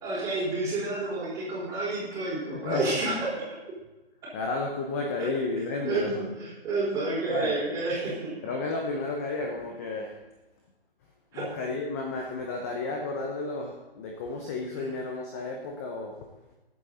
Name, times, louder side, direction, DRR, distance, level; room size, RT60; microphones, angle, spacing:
voice 1, 0.0-3.1 5.8-8.3 11.3-11.4, right 2 dB, 10° right, -6 dB, 4.7 m, -29 dB
voice 2, 2.5-3.0 4.3-6.3 7.3-7.6 8.4-10.2 11.3-16.5, left 3 dB, 15° left, 1 dB, 0.8 m, -32 dB
25.0 x 8.8 x 4.1 m, 1.1 s
figure-of-eight pair, 150°, 31 cm